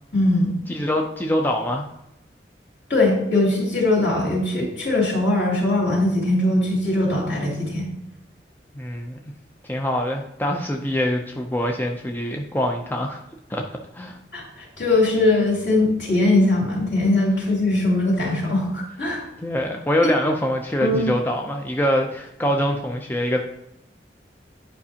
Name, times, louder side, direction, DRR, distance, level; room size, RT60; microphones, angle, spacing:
voice 1, 0.1-0.5 2.9-7.9 14.3-14.4 14.8-19.2 20.8-21.0, left 2 dB, 75° left, -4 dB, 2.9 m, -20 dB
voice 2, 0.7-1.9 8.7-9.2 9.6-13.2 13.5-13.6 13.9-14.2 19.4-23.4, left 1 dB, 10° left, 2 dB, 0.5 m, -24 dB
9.5 x 5.2 x 2.8 m, 0.82 s
head